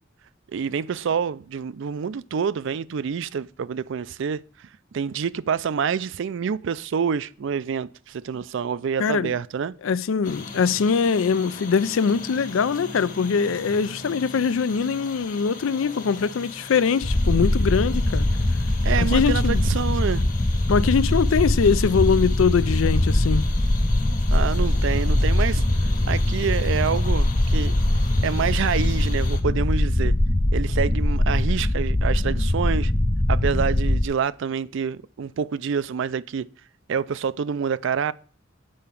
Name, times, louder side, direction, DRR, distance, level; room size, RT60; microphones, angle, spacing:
voice 1, 0.5-4.4 4.9-9.7 18.8-20.2 24.3-25.6 26.1-27.8 28.2-30.2 30.5-32.9 33.3-36.5 36.9-38.1, right 6 dB, 70° right, 0.4 m, -27 dB
voice 2, 9.0-9.3 9.8-18.3 19.0-19.7 20.7-23.4, left 6 dB, 85° left, 0.4 m, -22 dB
sound 1, 10.2-29.4, left 3 dB, 45° left, 1.2 m, -39 dB
sound 2, 17.0-34.0, left 1 dB, 15° left, 0.4 m, -22 dB
7.6 x 4.8 x 6.9 m
head